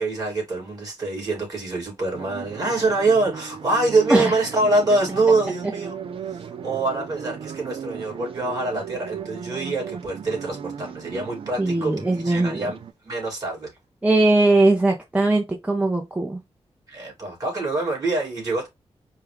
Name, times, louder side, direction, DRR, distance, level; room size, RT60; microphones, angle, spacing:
voice 1, 0.0-5.9 6.4-11.9 12.2-12.8 13.0-13.7 16.9-18.7, right 2 dB, 35° right, 2.7 m, -24 dB
sound 1, 2.1-12.9, right 7 dB, 60° right, 0.4 m, -36 dB
voice 2, 11.6-12.7 14.0-16.4, right 2 dB, 15° right, 0.6 m, -20 dB
4.7 x 2.3 x 3.3 m
wide cardioid pair, 130°, 11 cm